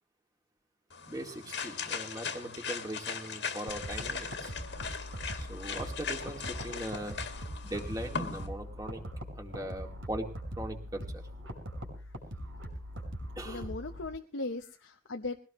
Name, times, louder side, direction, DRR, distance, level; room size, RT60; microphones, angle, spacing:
sound 1, 0.9-8.5, left 5 dB, 60° left, 1.9 m, -39 dB
voice 1, 1.1-4.5 5.4-7.2 7.6-9.0 9.4-10.3 10.5-11.2 13.4-13.7, right 1 dB, 20° right, 3 dB, 2.2 m, -40 dB
sound 2, 3.7-14.1, equal, 90° right, 6.0 m, -42 dB
voice 2, 13.4-15.4, left 2 dB, 80° left, 4 dB, 0.9 m, -38 dB
21.5 x 17.5 x 3.1 m, 0.36 s
head